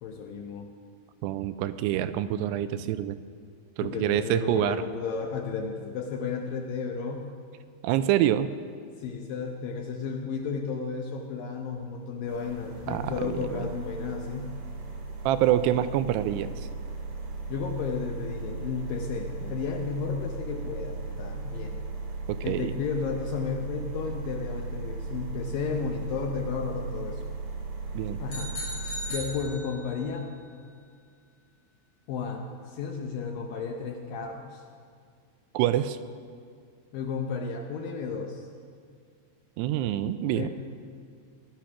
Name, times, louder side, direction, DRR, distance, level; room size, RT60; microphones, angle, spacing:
voice 1, 0.0-0.7 3.8-7.3 9.0-14.5 17.5-21.8 22.4-27.2 28.2-28.6 29.1-30.3 32.1-34.6 36.9-38.5 40.3-40.5, left 5 dB, 75° left, 2 dB, 2.1 m, -33 dB
voice 2, 1.2-3.2 3.8-4.8 7.8-8.5 12.9-13.7 15.3-16.5 22.3-22.8 27.9-28.2 35.5-36.0 39.6-40.5, right 12 dB, 85° right, 12 dB, 2.6 m, -26 dB
sound 1, 12.3-29.2, right 3 dB, 60° right, 3.3 m, -37 dB
sound 2, 28.3-30.1, left 1 dB, 30° left, 3.7 m, -38 dB
18.0 x 11.5 x 5.9 m, 2.2 s
omnidirectional pair, 4.9 m